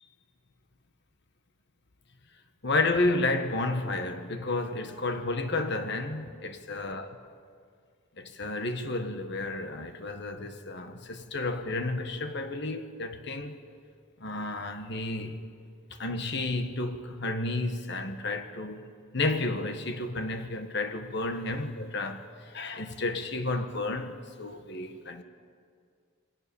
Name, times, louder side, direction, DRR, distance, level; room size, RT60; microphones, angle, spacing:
voice 1, 2.6-7.2 8.2-13.6 14.2-15.5 15.9-18.8 19.1-25.2, left 2 dB, 55° left, 1.5 m, -31 dB
28.0 x 21.5 x 7.1 m
head